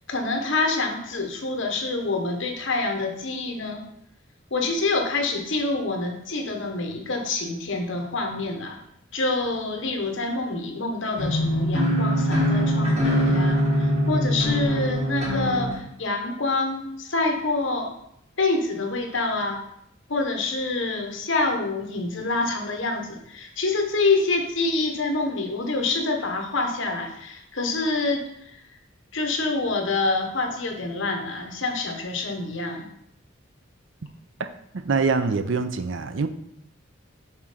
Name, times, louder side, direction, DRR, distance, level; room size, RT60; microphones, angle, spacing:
voice 1, 0.1-3.8 4.5-8.8 9.1-17.9 18.4-19.6 20.1-28.6 29.1-32.9, left 3 dB, 65° left, 3 dB, 1.1 m, -26 dB
sound 1, 11.2-15.7, equal, 35° right, 2.9 m, -22 dB
voice 2, 34.7-36.3, right 4 dB, 70° right, 10 dB, 0.6 m, -24 dB
6.1 x 4.3 x 5.1 m, 0.75 s
head